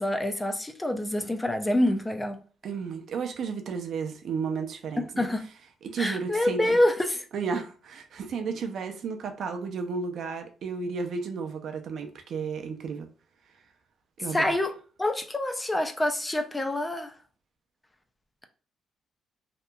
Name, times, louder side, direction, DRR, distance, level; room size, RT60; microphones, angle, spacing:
voice 1, 0.0-2.4 5.0-5.4 6.0-7.2 14.3-14.7 15.0-17.1, left 1 dB, 15° left, 0.4 m, -26 dB
voice 2, 2.6-5.3 5.8-6.8 7.3-13.1 14.2-14.5, right 5 dB, 65° right, 0.4 m, -33 dB
2.8 x 2.3 x 2.2 m
cardioid pair, 90°, 0 cm